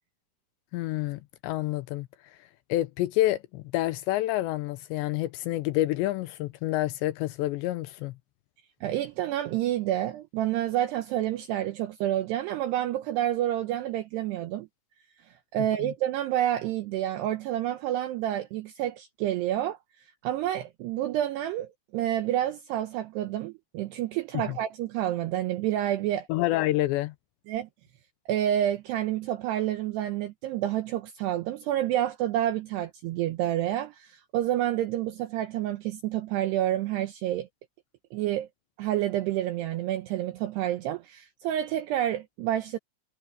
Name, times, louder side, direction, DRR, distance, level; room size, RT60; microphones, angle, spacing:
voice 1, 0.7-2.1 2.7-8.1 15.8-15.9 24.5-24.6 26.3-27.1, left 16 dB, 85° left, 2.5 m, -28 dB
voice 2, 8.8-14.7 15.5-19.8 20.2-26.3 27.5-27.7 28.3-37.5 38.1-38.5 38.8-42.8, right 12 dB, 85° right, 2.4 m, -29 dB
omnidirectional pair, 5.9 m